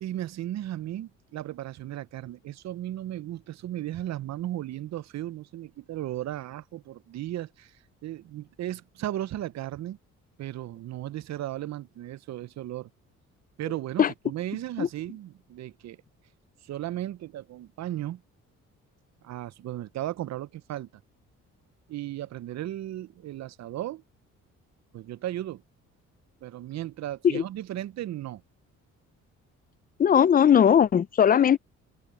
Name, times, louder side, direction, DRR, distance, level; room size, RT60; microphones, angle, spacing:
voice 1, 0.0-7.8 8.0-10.0 10.4-12.9 13.6-16.0 16.6-18.2 19.2-20.9 21.9-24.0 24.9-25.6 26.4-28.4, right 13 dB, 60° right, 0.6 m, -35 dB
voice 2, 30.0-31.6, left 8 dB, 30° left, 0.4 m, -19 dB
cardioid pair, 90°, 30 cm